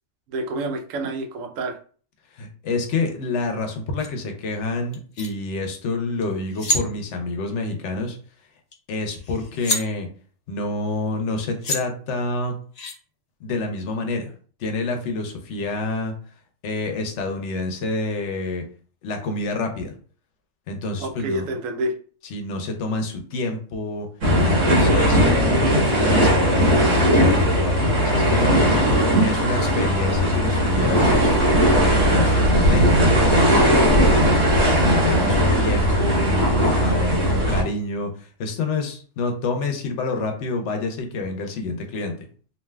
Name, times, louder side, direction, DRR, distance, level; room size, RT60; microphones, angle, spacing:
voice 1, 0.3-1.8 21.0-21.9, right 1 dB, 85° right, 4 dB, 1.0 m, -28 dB
voice 2, 2.3-8.2 8.9-10.1 10.5-12.6 13.4-14.3 14.6-16.1 16.6-18.6 19.0-19.9 20.7-21.5 22.2-24.1 24.4-25.2 25.6-28.6 29.2-31.4 31.7-32.9 33.8-34.1 34.7-42.1, left 3 dB, 70° left, 5 dB, 0.9 m, -28 dB
sound 1, 4.0-4.1 4.9-5.3 6.2-6.3 6.5-6.8 8.7-8.8 9.1-9.8 11.2-11.3 11.6-11.8 12.7-12.9, left 2 dB, 50° left, 0.5 m, -26 dB
sound 2, 24.2-37.6, equal, 60° right, 1.5 m, -18 dB
3.3 x 2.6 x 2.2 m, 0.42 s
omnidirectional pair, 1.3 m